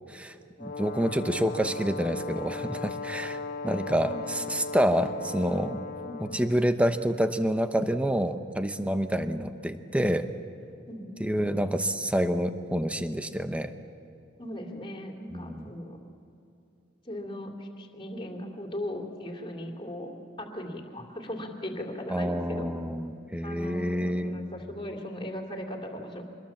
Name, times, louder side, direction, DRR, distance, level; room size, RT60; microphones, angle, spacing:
Brass instrument, 0.6-6.6, left 3 dB, 50° left, 0.9 m, -37 dB
voice 1, 0.6-3.4 3.6-5.8 6.2-10.3 11.2-13.7 15.3-15.7 22.1-24.4, equal, 5° right, 8 dB, 0.9 m, -28 dB
voice 2, 4.9-5.4 6.0-6.6 10.9-11.7 14.4-16.0 17.0-22.7 23.4-26.3, left 1 dB, 25° left, 2 dB, 2.9 m, -38 dB
25.5 x 21.0 x 7.3 m, 2.7 s
head